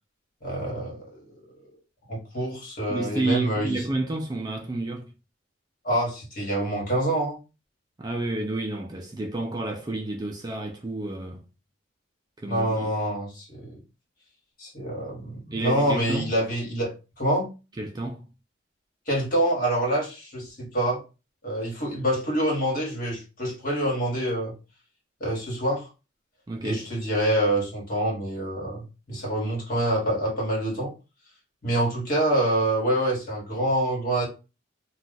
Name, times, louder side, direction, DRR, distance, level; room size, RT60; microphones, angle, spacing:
voice 1, 0.4-1.3 2.1-3.8 5.8-7.4 12.5-13.7 14.6-17.5 19.1-21.0 21.4-24.5 25.2-25.9 26.6-30.9 31.6-34.3, right 1 dB, 45° left, 1.4 m, -26 dB
voice 2, 2.9-5.1 8.0-11.4 12.4-13.0 15.5-16.3 17.8-18.3 26.5-26.8, right 2 dB, 20° right, 0.3 m, -30 dB
2.4 x 2.3 x 3.7 m
head